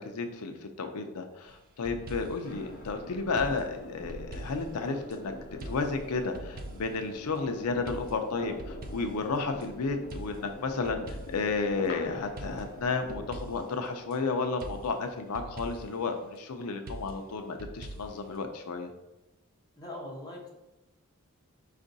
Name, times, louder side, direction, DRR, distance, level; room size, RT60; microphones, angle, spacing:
voice 1, 0.0-5.3 5.7-18.9, left 4 dB, 85° left, 6 dB, 0.5 m, -32 dB
sound 1, 1.5-2.6 3.4-5.2 5.6-7.1 7.9-9.7 10.1-11.6 12.4-14.2 14.6-16.0 16.9-18.4, right 1 dB, 40° right, 0.5 m, -44 dB
sound 2, 2.4-13.4, left 1 dB, 50° left, 0.8 m, -45 dB
voice 2, 19.8-20.5, left 1 dB, 15° left, -2 dB, 0.9 m, -41 dB
5.3 x 2.5 x 3.9 m, 1.0 s
head